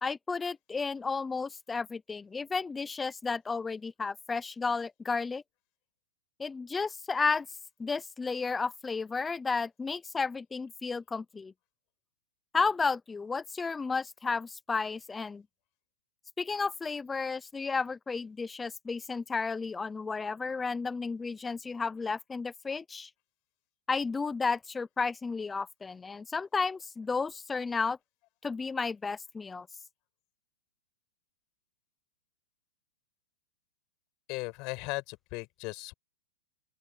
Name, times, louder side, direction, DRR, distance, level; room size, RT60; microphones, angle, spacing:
voice 1, 0.0-5.4 6.4-7.5 7.8-11.5 12.5-15.4 16.4-23.1 23.9-28.0 28.4-29.7, left 4 dB, 10° left, 0.7 m, -32 dB
voice 2, 34.3-35.9, left 25 dB, 40° left, 5.9 m, -37 dB
open air
hypercardioid pair, 145°, 0 cm